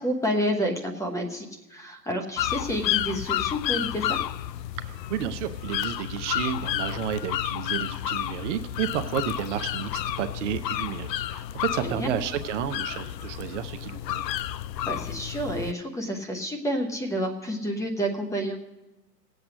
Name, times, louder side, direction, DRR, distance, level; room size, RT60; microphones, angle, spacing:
voice 1, 0.0-4.2 11.8-12.1 14.9-18.6, equal, 5° left, 3 dB, 0.9 m, -29 dB
sound 1, 2.4-15.7, left 12 dB, 80° left, 0.6 m, -31 dB
voice 2, 4.8-14.3, right 10 dB, 45° right, 9 dB, 0.8 m, -31 dB
18.0 x 8.0 x 6.2 m, 1.0 s
hypercardioid pair, 130°, 49 cm